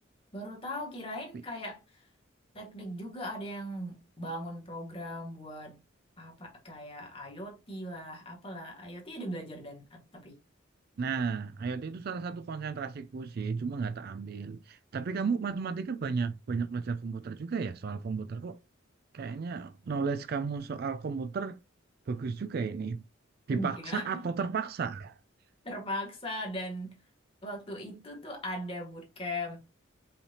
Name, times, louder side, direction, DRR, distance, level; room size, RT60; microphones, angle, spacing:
voice 1, 0.3-1.8 2.5-5.8 6.2-10.4 23.5-24.2 25.6-27.0 27.4-29.6, equal, 25° left, 1.6 m, -39 dB
voice 2, 11.0-18.6 19.1-21.6 22.1-23.0 23.5-25.2, right 5 dB, 50° right, 0.3 m, -33 dB
5.5 x 3.3 x 2.8 m
head